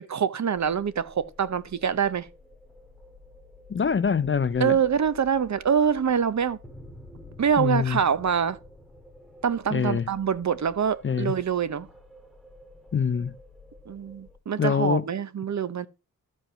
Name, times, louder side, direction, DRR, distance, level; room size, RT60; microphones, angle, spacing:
voice 1, 0.0-2.3 4.6-6.6 7.4-8.6 9.4-11.9 13.9-15.9, right 7 dB, 50° right, 0.8 m, -25 dB
sound 1, 0.5-14.4, left 2 dB, ahead, 1.7 m, -50 dB
voice 2, 3.7-4.8 7.6-8.0 9.7-10.1 11.0-11.3 12.9-13.4 14.6-15.1, left 6 dB, 35° left, 0.5 m, -24 dB
13.0 x 5.3 x 6.2 m
wide cardioid pair, 180°, 36 cm